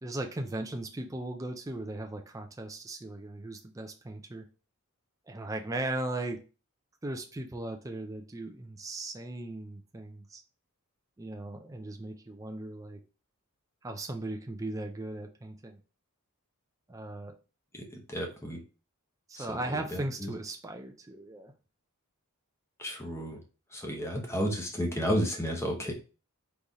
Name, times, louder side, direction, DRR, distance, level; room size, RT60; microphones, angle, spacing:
voice 1, 0.0-4.5 5.3-6.4 7.0-10.4 11.2-13.0 13.8-15.8 16.9-17.3 19.3-21.5, right 2 dB, 15° right, 4 dB, 0.4 m, -37 dB
voice 2, 18.1-18.6 19.4-19.5 19.9-20.3 22.8-23.4 23.7-25.9, equal, 10° left, 1 dB, 0.9 m, -32 dB
4.0 x 3.3 x 3.6 m, 0.34 s
head